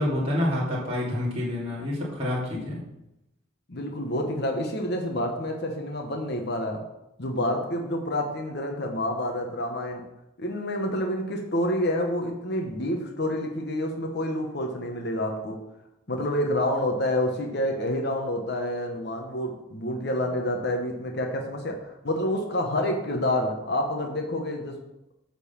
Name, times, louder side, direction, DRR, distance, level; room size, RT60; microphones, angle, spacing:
voice 1, 0.0-2.8, left 1 dB, 30° right, -7 dB, 2.7 m, -27 dB
voice 2, 3.7-6.8 7.2-10.0 10.4-15.6 16.1-21.8 22.0-24.8, left 1 dB, 50° left, 3 dB, 1.0 m, -28 dB
8.4 x 4.0 x 7.0 m, 0.89 s
head